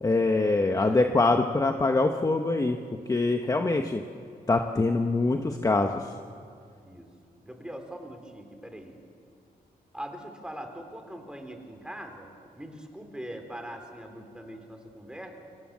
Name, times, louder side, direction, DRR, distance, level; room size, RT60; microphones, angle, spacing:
voice 1, 0.0-2.8 3.1-4.0 4.5-6.0, left 3 dB, 20° left, 5 dB, 1.0 m, -24 dB
voice 2, 0.7-1.0 6.8-7.1 7.4-9.0 9.9-12.3 12.6-15.3, right 1 dB, 5° right, 4 dB, 3.5 m, -42 dB
28.5 x 25.5 x 7.4 m, 2.4 s
wide cardioid pair, 135°, 16 cm